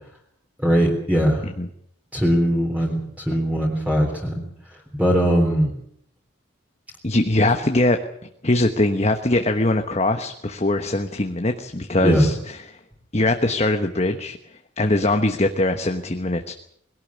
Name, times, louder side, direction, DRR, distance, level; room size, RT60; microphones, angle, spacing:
voice 1, 0.6-1.4 2.1-4.4 4.9-5.7 12.0-12.3, equal, 5° right, -1 dB, 3.6 m, -20 dB
voice 2, 7.0-8.0 8.4-12.8 13.1-14.4 14.8-16.5, left 2 dB, 30° left, 5 dB, 1.2 m, -21 dB
21.5 x 17.5 x 8.6 m, 0.70 s
head